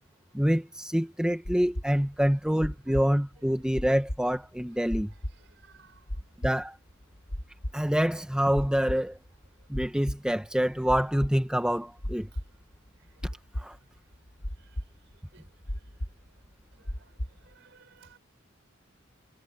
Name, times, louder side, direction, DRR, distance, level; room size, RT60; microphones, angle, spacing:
voice 1, 0.3-5.1 6.4-6.8 7.7-9.2 9.7-12.3 13.6-13.8, equal, 5° right, 1.0 m, -26 dB
sound 1, 1.4-17.5, equal, 55° left, 2.2 m, -36 dB
voice 2, 5.1-6.0 12.3-12.4 13.8-13.9 14.6-14.7 15.3-15.4 16.8-17.1 17.4-18.2, right 5 dB, 60° right, 4.6 m, -59 dB
head